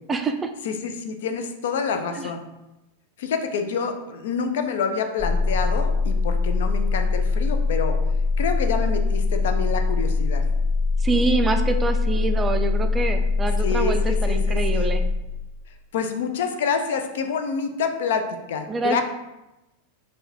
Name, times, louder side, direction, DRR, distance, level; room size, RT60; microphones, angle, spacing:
voice 1, 0.1-0.5 2.1-2.3 11.0-15.0 18.7-19.0, right 3 dB, 15° right, 7 dB, 0.4 m, -25 dB
voice 2, 0.6-2.4 3.2-8.0 8.4-10.4 13.6-15.0 15.9-19.0, left 5 dB, 55° left, 7 dB, 0.5 m, -27 dB
sound 1, 5.2-15.2, left 3 dB, 20° left, 0.9 m, -22 dB
4.6 x 2.3 x 4.3 m, 0.97 s
figure-of-eight pair, 90°, 0 cm